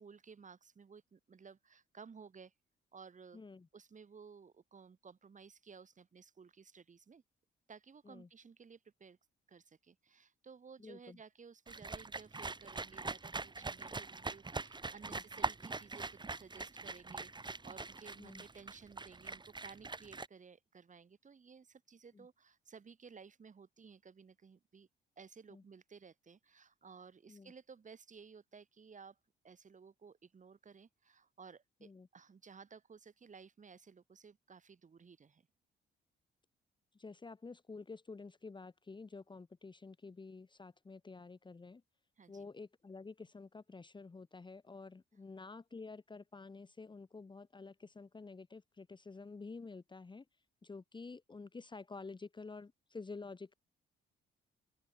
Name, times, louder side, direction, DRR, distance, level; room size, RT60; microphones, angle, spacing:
voice 1, 0.0-2.5 2.9-3.4 3.7-7.2 7.7-9.2 9.5-24.9 25.2-29.2 29.4-35.5 42.2-42.5, right 5 dB, 40° right, 5.5 m, -56 dB
voice 2, 3.3-3.7 8.0-8.3 10.8-11.2 15.1-15.2 18.2-18.4 22.1-22.3 25.5-25.6 27.3-27.5 31.8-32.1 36.9-41.8 42.3-50.3 50.6-53.5, left 4 dB, 25° left, 1.4 m, -50 dB
sound 1, 11.7-20.3, right 3 dB, 20° right, 2.5 m, -43 dB
open air
cardioid pair, 90°, 20 cm